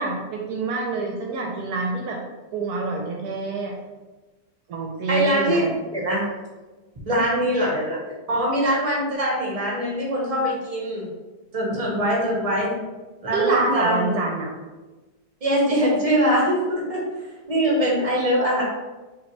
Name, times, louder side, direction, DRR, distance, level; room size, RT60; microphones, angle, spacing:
voice 1, 0.0-2.2 2.5-3.8 4.7-5.7 13.3-14.5, right 3 dB, 75° right, 0 dB, 1.1 m, -26 dB
voice 2, 5.1-6.2 7.1-8.0 8.3-11.1 11.5-12.7 13.2-14.2 15.4-17.0 17.5-18.6, equal, 25° right, -4 dB, 1.2 m, -22 dB
5.3 x 2.8 x 3.2 m, 1.2 s
omnidirectional pair, 1.8 m